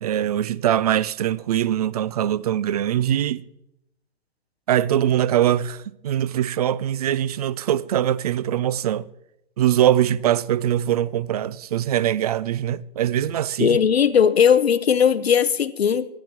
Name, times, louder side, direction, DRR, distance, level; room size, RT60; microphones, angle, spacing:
voice 1, 0.0-3.4 4.7-9.1 9.6-13.8, right 11 dB, 40° right, 0.4 m, -22 dB
voice 2, 13.6-16.1, left 8 dB, 80° left, 0.7 m, -18 dB
18.5 x 12.0 x 2.9 m
figure-of-eight pair, 125°, 31 cm